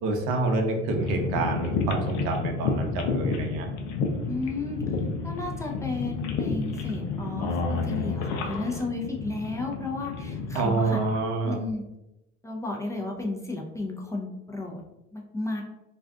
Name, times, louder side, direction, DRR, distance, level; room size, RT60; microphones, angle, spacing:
voice 1, 0.0-3.7 10.5-11.6, right 3 dB, 80° right, 3 dB, 0.7 m, -27 dB
sound 1, 1.0-11.2, left 4 dB, 80° left, 0.6 m, -30 dB
voice 2, 4.3-4.8 5.2-11.0 11.4-11.8 12.4-14.8 15.1-15.6, left 3 dB, 10° left, -1 dB, 0.5 m, -33 dB
2.5 x 2.4 x 3.4 m, 0.92 s
supercardioid pair, 90°, 30 cm